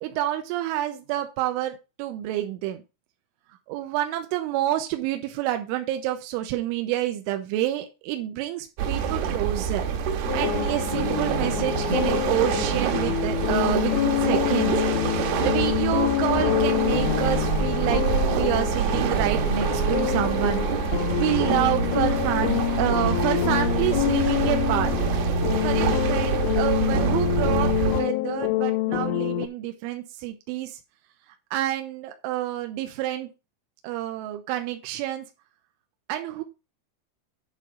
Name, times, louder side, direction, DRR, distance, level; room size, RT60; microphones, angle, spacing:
voice 1, 0.0-2.8 3.7-9.8 10.3-14.7 15.4-24.9 25.6-30.7 31.5-33.3 33.8-35.3 36.1-36.4, right 13 dB, 85° right, 6 dB, 3.1 m, -28 dB
sound 1, 8.8-28.0, right 7 dB, 70° right, 2.4 m, -26 dB
sound 2, 10.3-29.5, left 17 dB, 85° left, 2.6 m, -26 dB
9.4 x 3.7 x 5.1 m, 0.28 s
omnidirectional pair, 5.7 m